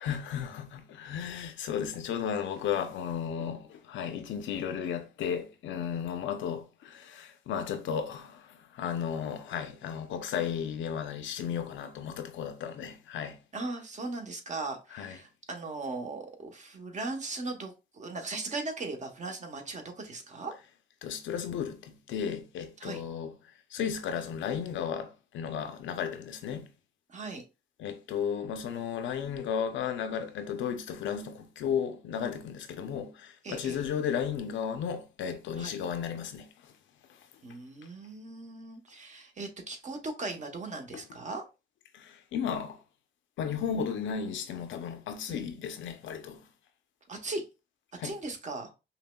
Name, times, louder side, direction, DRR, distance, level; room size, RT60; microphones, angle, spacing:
voice 1, 0.0-13.4 14.9-15.2 21.0-23.3 23.7-26.7 27.8-36.8 37.1-37.3 40.9-41.0 41.9-42.8 43.4-46.4 48.0-48.2, left 8 dB, 75° left, 0.6 m, -34 dB
voice 2, 13.5-20.5 22.8-23.0 27.1-27.4 33.4-33.8 35.6-35.7 37.4-41.4 45.3-45.5 47.1-47.4 48.0-48.7, right 3 dB, 35° right, 0.9 m, -38 dB
5.5 x 2.1 x 2.2 m
cardioid pair, 90°, 20 cm